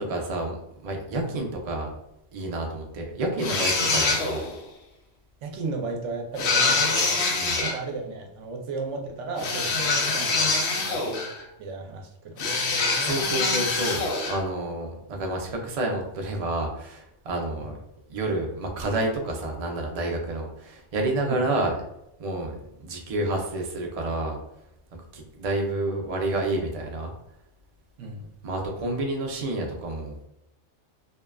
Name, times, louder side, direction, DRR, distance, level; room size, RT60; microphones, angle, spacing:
voice 1, 0.0-1.9 2.3-4.5 7.4-7.6 13.0-17.8 18.1-21.8 22.2-24.4 25.1-27.1 28.4-30.1, right 2 dB, 60° right, 2 dB, 0.4 m, -29 dB
sound 1, 3.4-4.6 6.4-7.8 9.4-11.4 12.4-14.4, left 3 dB, 70° left, 0.8 m, -25 dB
voice 2, 5.4-7.3 7.6-10.5 10.9-11.3 11.6-12.4 17.6-17.7 21.2-21.4 28.0-28.3, right 3 dB, 80° right, 2 dB, 0.9 m, -34 dB
2.6 x 2.3 x 2.2 m, 0.84 s
omnidirectional pair, 1.2 m